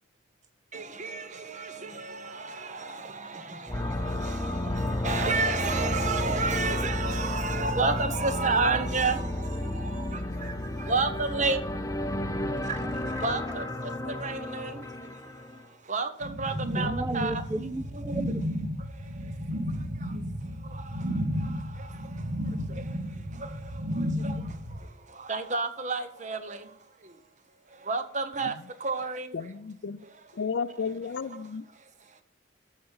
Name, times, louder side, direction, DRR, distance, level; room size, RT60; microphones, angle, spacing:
voice 1, 0.7-3.6 5.0-9.2 10.9-11.6 12.7-12.8 13.2-13.6 14.2-14.7 15.9-17.7 24.2-24.3 25.3-26.6 27.9-28.5 28.8-29.3, right 4 dB, 40° right, 1.0 m, -29 dB
sound 1, 3.7-15.6, left 1 dB, 15° left, 0.7 m, -32 dB
voice 2, 12.8-13.6 16.7-18.4, right 2 dB, 15° right, 0.3 m, -35 dB
sound 2, 16.2-24.8, equal, 85° right, 2.5 m, -33 dB
voice 3, 29.3-30.0 30.3-31.7, left 5 dB, 65° left, 0.5 m, -33 dB
12.5 x 6.6 x 5.7 m
head